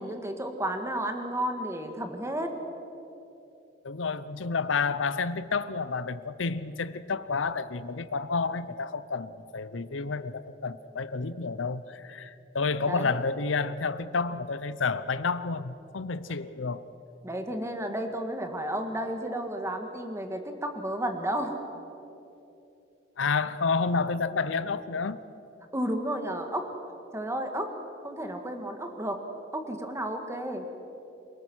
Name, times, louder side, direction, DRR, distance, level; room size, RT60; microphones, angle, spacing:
voice 1, 0.0-2.6 12.9-13.2 17.2-21.6 25.7-26.7 27.1-27.7 28.0-29.2 29.5-30.7, right 1 dB, 15° right, 1.8 m, -32 dB
voice 2, 3.8-16.9 23.2-25.2, left 4 dB, 80° left, 0.8 m, -30 dB
27.5 x 18.5 x 6.3 m
head